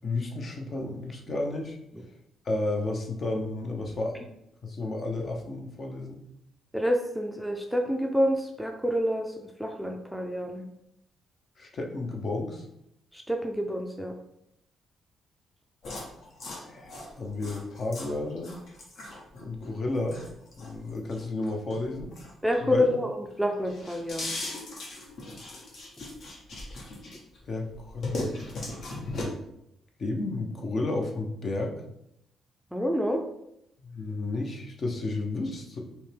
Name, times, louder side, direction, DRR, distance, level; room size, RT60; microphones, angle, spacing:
voice 1, 0.0-1.8 2.4-4.2 4.6-6.2 11.6-12.7 16.6-18.5 19.4-20.2 20.6-22.1 22.6-22.9 27.5-28.3 30.0-31.7 33.8-35.8, left 2 dB, 45° left, 1 dB, 0.8 m, -32 dB
voice 2, 6.7-10.7 13.1-14.1 22.4-24.4 32.7-33.2, equal, ahead, 2 dB, 0.5 m, -28 dB
sound 1, 15.8-22.9 23.3-27.4 27.7-29.2, left 2 dB, 60° left, 1.2 m, -38 dB
5.3 x 2.2 x 3.3 m, 0.79 s
cardioid pair, 90°, 0 cm